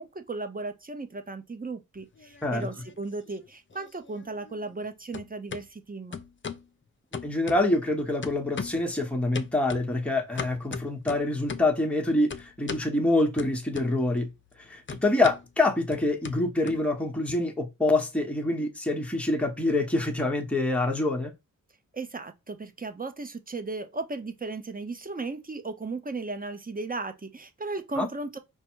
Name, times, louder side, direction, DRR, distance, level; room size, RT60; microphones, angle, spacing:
voice 1, 0.0-6.2 21.9-28.4, right 3 dB, 25° right, 0.9 m, -36 dB
sound 1, 2.0-3.0 3.3-4.9 5.1-5.6 6.1-6.7 7.1-7.9 8.2-8.9 9.3-11.8 12.3-12.9 13.4-14.2 14.5-17.3, left 6 dB, 35° left, 0.6 m, -39 dB
voice 2, 7.2-14.3 14.6-21.3 28.0-28.1, left 2 dB, 5° left, 1.2 m, -26 dB
5.1 x 2.3 x 4.5 m
cardioid pair, 60°, 34 cm